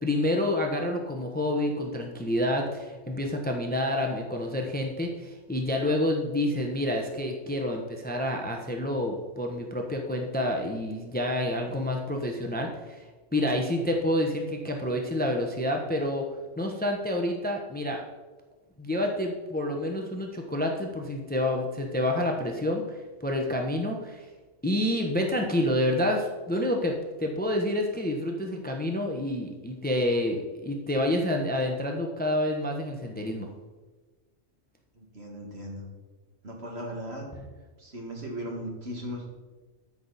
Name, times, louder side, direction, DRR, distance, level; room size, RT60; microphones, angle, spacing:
voice 1, 0.0-13.0 13.3-16.3 16.6-18.0 18.8-24.3 24.6-33.5, left 1 dB, 10° left, 2 dB, 0.8 m, -28 dB
voice 2, 34.9-35.9 36.4-37.2 37.8-39.3, equal, 55° right, -1 dB, 2.3 m, -37 dB
13.0 x 6.0 x 4.1 m, 1.3 s
omnidirectional pair, 1.3 m